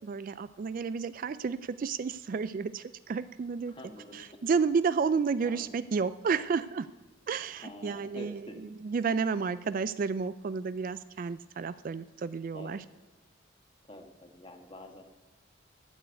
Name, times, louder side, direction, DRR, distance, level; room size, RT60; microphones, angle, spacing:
voice 1, 0.0-3.7 4.1-6.9 7.3-12.8, right 5 dB, 45° right, 14 dB, 0.3 m, -31 dB
voice 2, 3.7-4.4 5.4-5.8 7.6-8.5 12.5-12.8 13.8-15.0, left 1 dB, 25° left, 4 dB, 1.3 m, -47 dB
12.5 x 7.0 x 8.0 m, 1.3 s
head